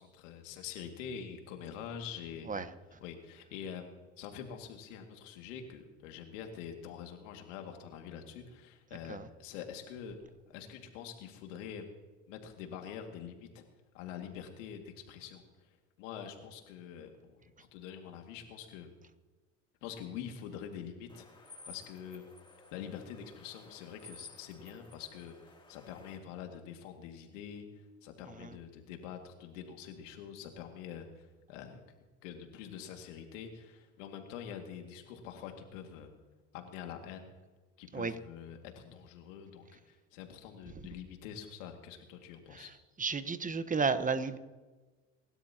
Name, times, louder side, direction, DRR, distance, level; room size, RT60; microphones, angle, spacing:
voice 1, 0.0-2.5 3.0-10.2 10.5-11.9 12.3-13.6 13.9-15.4 16.0-18.9 19.8-22.3 22.7-31.8 32.2-36.1 36.5-37.3 37.8-42.7, left 8 dB, 80° left, 4 dB, 2.3 m, -45 dB
sound 1, 21.1-26.2, left 3 dB, 15° left, 3.0 m, -55 dB
voice 2, 43.0-44.4, right 5 dB, 20° right, 11 dB, 1.2 m, -33 dB
28.0 x 12.5 x 3.0 m, 1.3 s
hypercardioid pair, 80°, 37 cm